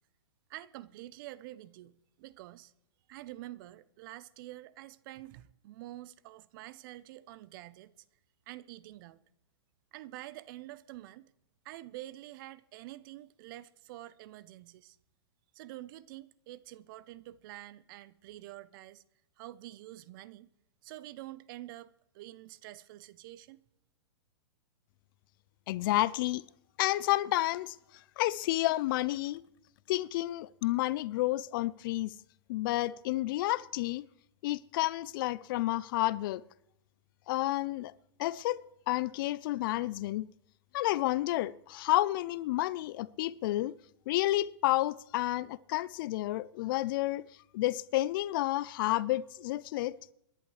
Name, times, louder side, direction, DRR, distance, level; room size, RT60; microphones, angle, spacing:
voice 1, 0.5-2.7 3.1-7.9 8.5-9.2 9.9-11.3 11.6-15.0 15.5-19.0 19.4-20.5 20.8-23.6, right 15 dB, 45° right, 0.6 m, -47 dB
voice 2, 25.7-26.4 26.8-27.8 28.2-29.4 29.9-32.1 32.5-34.0 34.4-36.4 37.3-37.9 38.2-38.6 38.9-40.3 40.7-43.7 44.1-47.2 47.5-49.9, left 16 dB, 50° left, 0.4 m, -30 dB
27.5 x 11.0 x 3.2 m
hypercardioid pair, 135°, 15 cm